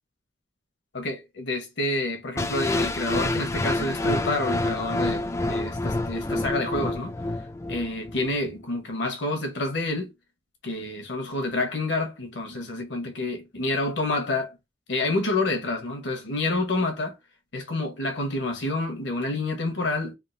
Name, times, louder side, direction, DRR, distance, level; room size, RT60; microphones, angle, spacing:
voice 1, 0.9-7.1 7.7-10.1 10.6-14.5 14.9-17.1 17.5-20.1, left 2 dB, 70° left, 1.1 m, -28 dB
sound 1, 2.4-8.4, left 2 dB, 15° left, 0.3 m, -28 dB
3.5 x 2.4 x 2.6 m
head